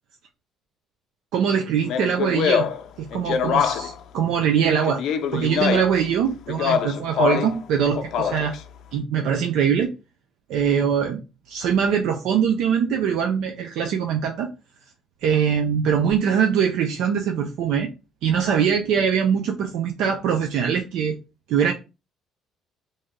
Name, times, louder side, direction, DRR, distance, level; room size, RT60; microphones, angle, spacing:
voice 1, 1.3-2.7 3.0-5.0 5.3-8.5 8.9-9.9 10.5-11.2 11.5-14.5 15.2-17.9 18.2-21.2 21.5-21.7, right 7 dB, 75° right, 3 dB, 0.5 m, -22 dB
Speech, 1.8-4.0 4.8-6.0 6.5-7.6 7.9-8.6, left 8 dB, 65° left, 0.5 m, -24 dB
3.2 x 2.7 x 3.6 m, 0.29 s
cardioid pair, 140°, 0 cm